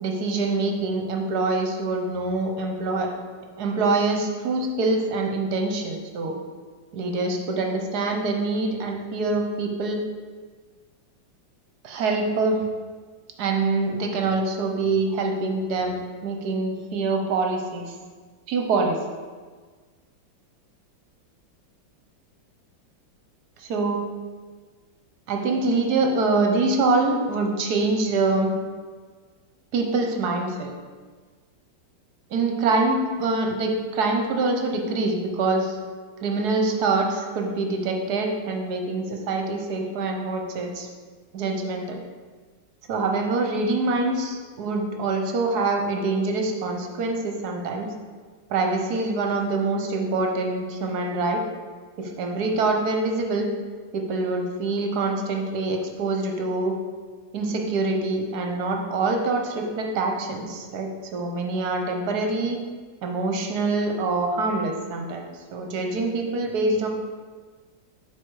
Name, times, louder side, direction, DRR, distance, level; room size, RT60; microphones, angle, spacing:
voice 1, 0.0-3.1 3.6-6.4 6.9-10.0 11.8-12.6 13.4-17.9 18.5-19.0 23.6-24.0 25.3-28.5 29.7-30.7 32.3-35.8 36.2-40.9 41.3-42.0 42.9-47.9 48.5-51.4 52.0-53.5 53.9-56.7 57.3-62.6 63.0-65.3 65.5-66.9, right 3 dB, 60° right, 2 dB, 1.2 m, -25 dB
7.9 x 3.9 x 4.7 m, 1.5 s
omnidirectional pair, 2.2 m